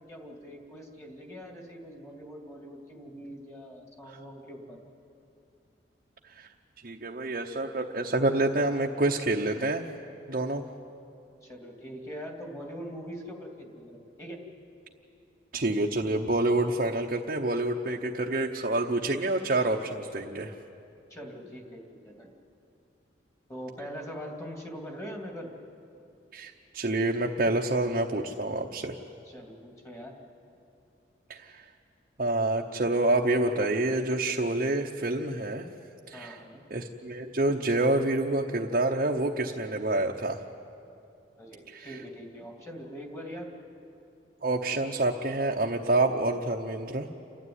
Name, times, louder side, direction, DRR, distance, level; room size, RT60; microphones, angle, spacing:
voice 1, 0.0-4.8 11.4-14.4 21.1-22.3 23.5-25.5 29.2-30.1 36.1-36.6 41.4-43.5, equal, 15° left, 0 dB, 2.6 m, -42 dB
voice 2, 6.8-9.8 10.3-10.6 15.5-20.5 26.3-29.0 31.3-31.6 32.2-35.7 36.1-36.4 36.7-40.4 41.7-42.0 44.4-47.1, right 2 dB, 45° right, 0 dB, 0.9 m, -27 dB
29.0 x 12.5 x 9.6 m, 2.7 s
head